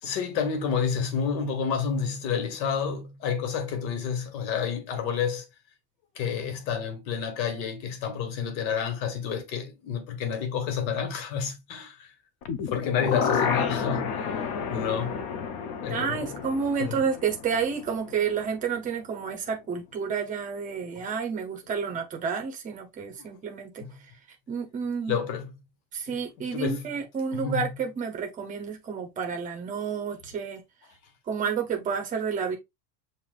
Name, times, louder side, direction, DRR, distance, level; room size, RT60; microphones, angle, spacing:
voice 1, 0.0-5.5 6.1-12.1 12.6-15.2 15.8-16.4 16.8-17.0 20.9-21.0 23.2-23.3 23.8-23.9 25.1-25.5 26.1-26.2 26.5-26.9 27.3-27.6, left 7 dB, 85° left, 1.6 m, -30 dB
sound 1, 12.4-18.4 18.8-18.9, left 6 dB, 35° left, 0.5 m, -31 dB
voice 2, 15.9-23.9 24.5-25.2 25.9-30.6 31.3-32.6, right 6 dB, 15° right, 0.6 m, -30 dB
7.2 x 2.5 x 2.3 m
supercardioid pair, 165°, 50 cm